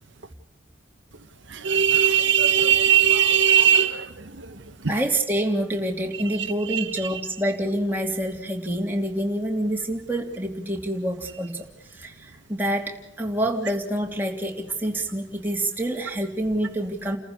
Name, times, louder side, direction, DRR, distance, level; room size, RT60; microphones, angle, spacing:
voice 1, 1.5-4.1 6.7-6.8, right 9 dB, 60° right, 7 dB, 1.0 m, -18 dB
voice 2, 4.9-11.6 11.9-17.2, right 1 dB, 10° right, 0 dB, 2.9 m, -27 dB
29.5 x 15.0 x 8.3 m, 0.80 s
head